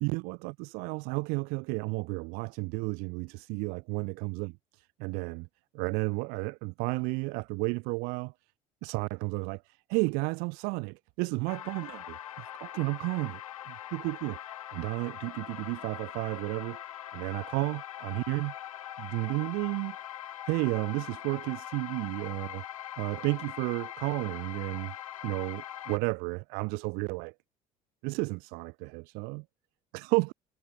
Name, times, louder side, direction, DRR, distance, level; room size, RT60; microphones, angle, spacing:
voice 1, 0.0-5.5 5.7-8.3 8.8-13.4 13.7-14.4 14.7-16.8 17.1-18.5 19.0-20.0 20.5-22.6 23.0-24.9 25.2-27.3 28.0-29.4 29.9-30.3, right 30 dB, 55° right, 1.3 m, -32 dB
sound 1, 11.5-26.0, left 11 dB, 75° left, 1.1 m, -42 dB
figure-of-eight pair, 60°, 18 cm